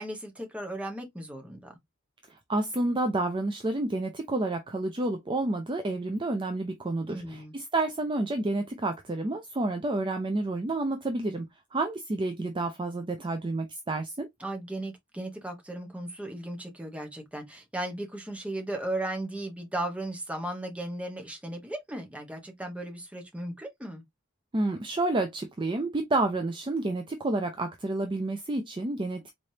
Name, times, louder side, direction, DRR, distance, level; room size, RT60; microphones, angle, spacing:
voice 1, 0.0-1.8 7.1-7.6 14.4-24.0, right 1 dB, 5° right, 0.9 m, -36 dB
voice 2, 2.3-11.5 11.7-14.3 24.5-29.3, right 2 dB, 25° right, 0.4 m, -29 dB
4.0 x 3.2 x 2.7 m
head